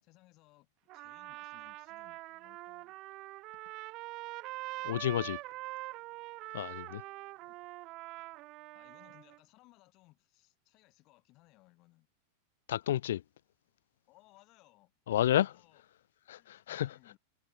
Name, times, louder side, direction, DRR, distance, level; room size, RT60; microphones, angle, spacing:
voice 1, 0.0-3.0 7.4-7.6 8.7-12.1 14.1-14.9 15.2-15.8 16.3-17.2, left 21 dB, 35° left, 6.1 m, -64 dB
Trumpet, 0.9-9.4, right 20 dB, 35° right, 0.6 m, -44 dB
voice 2, 4.8-5.4 6.5-7.0 12.7-13.2 15.1-15.5 16.3-16.9, left 12 dB, 85° left, 0.5 m, -30 dB
supercardioid pair, 160°, 0 cm